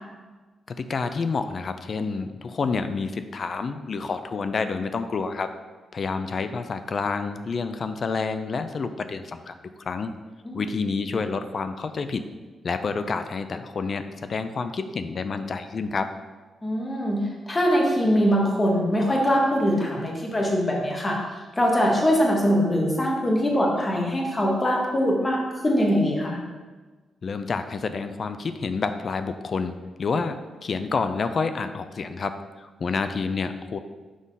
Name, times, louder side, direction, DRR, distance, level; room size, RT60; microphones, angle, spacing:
voice 1, 0.7-5.5 5.9-10.1 10.5-12.3 12.6-16.1 27.2-29.7 30.0-33.8, left 4 dB, 40° left, 10 dB, 0.4 m, -29 dB
voice 2, 16.6-21.2 21.6-26.4, equal, 20° left, -1 dB, 1.1 m, -22 dB
6.2 x 3.8 x 5.3 m, 1.3 s
cardioid pair, 145°, 0 cm